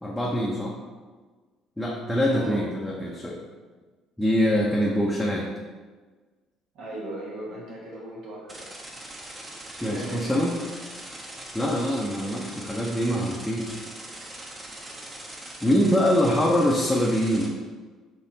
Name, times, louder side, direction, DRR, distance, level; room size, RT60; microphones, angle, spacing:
voice 1, 0.0-0.8 1.8-3.4 4.2-5.5 9.8-10.6 11.5-13.7 15.6-17.6, equal, 5° left, -3 dB, 0.7 m, -24 dB
voice 2, 2.3-2.6 6.7-8.7 9.8-10.5 11.6-12.0, right 1 dB, 60° right, -4 dB, 1.3 m, -37 dB
sound 1, 8.5-17.5, right 1 dB, 20° right, 1.0 m, -41 dB
4.1 x 3.1 x 3.9 m, 1.4 s
figure-of-eight pair, 50°, 0 cm